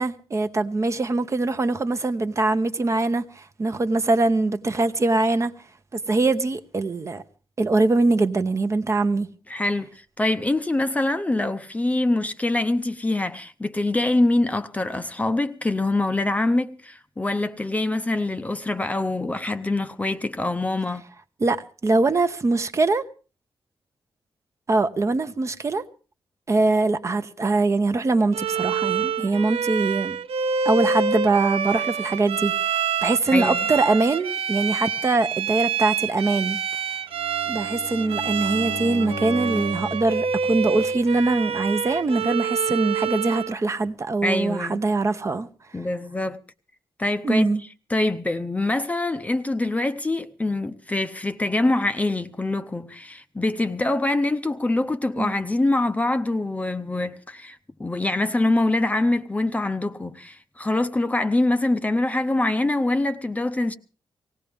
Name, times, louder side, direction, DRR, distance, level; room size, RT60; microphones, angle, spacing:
voice 1, 0.0-5.5 5.9-7.2 7.6-9.3 21.4-23.0 24.7-25.8 26.5-30.2 30.6-36.6 37.5-45.5 47.2-47.6 55.2-55.3, right 3 dB, 30° right, 0.8 m, -23 dB
voice 2, 9.5-21.0 33.3-33.6 44.2-44.8 45.7-46.4 47.0-47.5 47.9-63.7, left 2 dB, 15° left, 0.7 m, -24 dB
Bowed string instrument, 28.3-43.6, right 6 dB, 75° right, 0.8 m, -27 dB
Bowed string instrument 2, 37.1-41.3, left 5 dB, 70° left, 1.0 m, -37 dB
19.0 x 17.5 x 3.5 m
wide cardioid pair, 145°, 10 cm